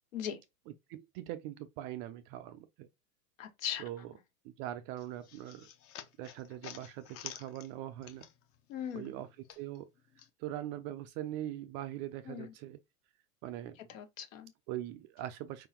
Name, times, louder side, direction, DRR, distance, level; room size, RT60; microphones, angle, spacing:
voice 1, 0.9-2.9 3.8-4.1 4.4-5.7 6.2-8.3 8.9-9.9 10.4-12.8 13.4-13.8 14.7-15.7, right 13 dB, 30° right, 0.4 m, -42 dB
voice 2, 3.4-3.8 8.7-9.1 12.3-12.5 13.9-14.5, left 9 dB, 65° left, 1.6 m, -39 dB
sound 1, 5.0-8.6 8.9-10.3, left 10 dB, 35° left, 0.8 m, -50 dB
4.8 x 3.7 x 2.9 m
hypercardioid pair, 125°, 42 cm